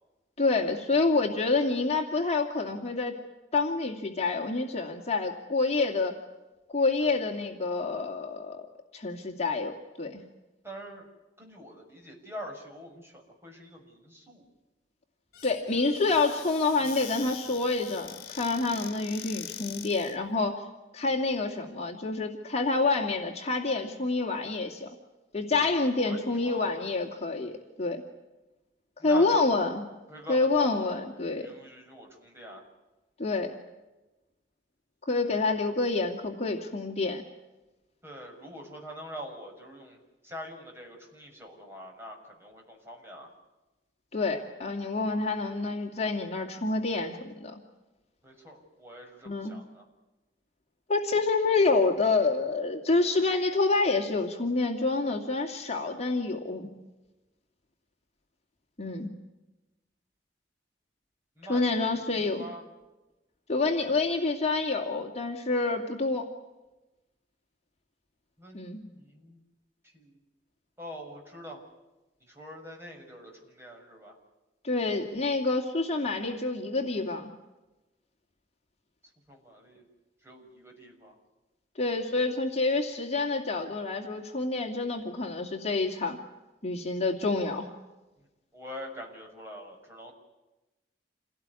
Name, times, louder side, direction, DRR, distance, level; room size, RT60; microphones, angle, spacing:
voice 1, 0.4-3.2 3.5-6.2 6.7-8.7 8.9-10.2 15.4-20.6 20.9-24.9 25.3-28.0 29.0-29.8 30.3-31.5 33.2-33.5 35.1-37.2 44.1-47.6 49.2-49.6 50.9-56.7 58.8-59.1 61.5-62.4 63.5-66.3 68.5-68.8 74.6-77.3 81.8-86.2 86.6-87.7, left 3 dB, 40° left, 2 dB, 2.4 m, -27 dB
voice 2, 10.6-11.1 11.4-14.4 25.9-26.7 29.0-29.4 30.1-32.6 38.0-43.3 48.2-49.8 61.4-62.6 68.4-69.4 69.8-70.2 70.8-71.6 72.2-74.1 79.3-79.9 80.2-81.2 88.5-90.1, equal, 15° right, 0 dB, 6.5 m, -44 dB
Squeak / Cupboard open or close, 15.3-20.2, left 9 dB, 60° left, 2.0 m, -43 dB
28.0 x 18.0 x 9.7 m, 1.1 s
head